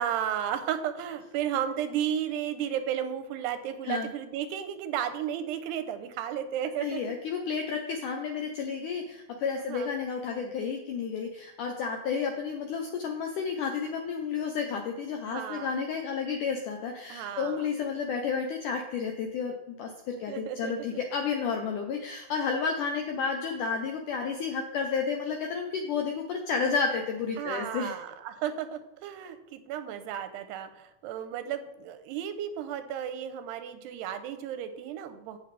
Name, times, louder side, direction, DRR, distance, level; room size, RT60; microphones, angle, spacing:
voice 1, 0.0-7.0 9.6-9.9 15.3-15.7 17.1-17.7 20.3-21.0 27.4-35.4, right 9 dB, 85° right, 10 dB, 2.8 m, -33 dB
voice 2, 6.8-27.9, left 5 dB, 80° left, 3 dB, 1.8 m, -31 dB
16.0 x 5.9 x 3.4 m, 0.88 s
omnidirectional pair, 4.7 m